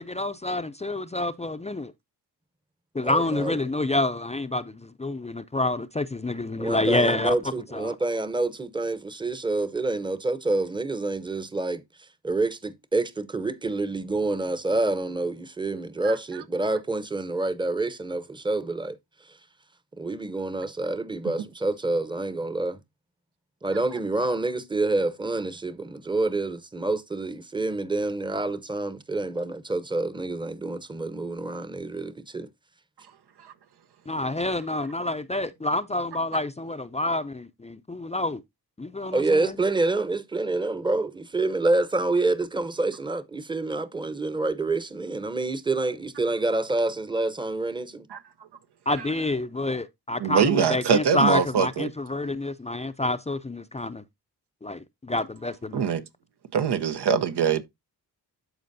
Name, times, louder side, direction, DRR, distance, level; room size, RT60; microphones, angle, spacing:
voice 1, 0.0-1.9 2.9-7.4 7.7-8.0 34.1-38.4 38.8-39.6 48.9-54.0 54.6-55.8, left 2 dB, 15° left, 0.5 m, -28 dB
voice 2, 3.0-3.6 6.6-19.0 19.3-19.4 20.0-22.8 23.6-32.5 39.1-48.1, right 2 dB, 10° right, 0.8 m, -27 dB
voice 3, 50.2-51.9 55.7-56.0 56.5-57.6, right 7 dB, 80° right, 0.9 m, -23 dB
13.0 x 4.4 x 2.6 m
cardioid pair, 85°, 40 cm